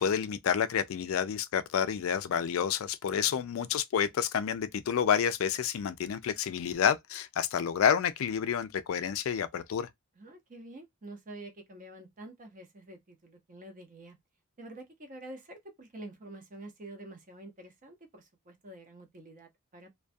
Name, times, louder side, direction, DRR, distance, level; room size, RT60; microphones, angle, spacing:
voice 1, 0.0-9.9, left 8 dB, 70° left, 0.3 m, -29 dB
voice 2, 3.1-3.7 10.2-14.2 14.6-19.9, right 1 dB, 40° right, 0.7 m, -48 dB
2.3 x 2.2 x 2.5 m
head